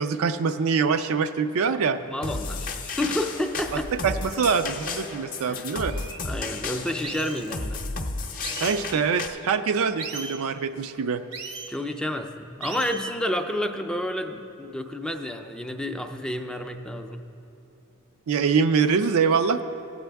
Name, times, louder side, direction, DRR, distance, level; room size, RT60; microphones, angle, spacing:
voice 1, 0.0-2.0 4.0-5.9 8.6-11.2 18.3-19.6, right 5 dB, 70° right, 8 dB, 0.4 m, -24 dB
voice 2, 2.0-3.9 5.5-5.6 6.2-7.8 11.7-17.2, left 1 dB, 5° left, 6 dB, 0.4 m, -30 dB
sound 1, 2.2-9.3, left 3 dB, 40° left, 0.7 m, -33 dB
sound 2, 5.3-5.4 5.8-6.2 7.0-7.4 8.4-8.8 10.0-10.4 11.3-11.7 12.6-13.1, right 4 dB, 90° right, 1.0 m, -37 dB
17.5 x 8.0 x 3.4 m, 2.8 s
head